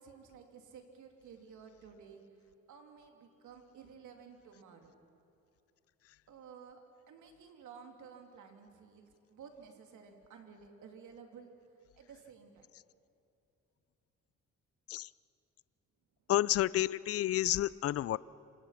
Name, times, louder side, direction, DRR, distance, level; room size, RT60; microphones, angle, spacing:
voice 1, 0.0-2.2 2.7-4.9 6.3-11.5 11.9-12.7, right 6 dB, 75° right, 3 dB, 3.1 m, -54 dB
voice 2, 16.3-18.2, left 13 dB, 50° left, 20 dB, 0.5 m, -30 dB
27.0 x 26.0 x 5.9 m, 2.7 s
cardioid pair, 90°, 30 cm